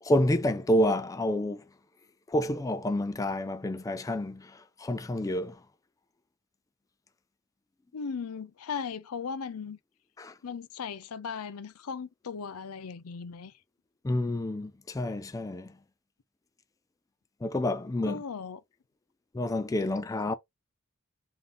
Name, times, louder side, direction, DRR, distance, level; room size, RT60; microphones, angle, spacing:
voice 1, 0.0-1.6 2.3-5.6 10.2-10.3 14.0-15.7 17.4-18.2 19.3-20.3, left 1 dB, 15° left, 0.3 m, -29 dB
voice 2, 7.9-9.8 10.4-13.5 18.1-18.6, left 6 dB, 85° left, 0.5 m, -37 dB
3.8 x 2.7 x 3.4 m
head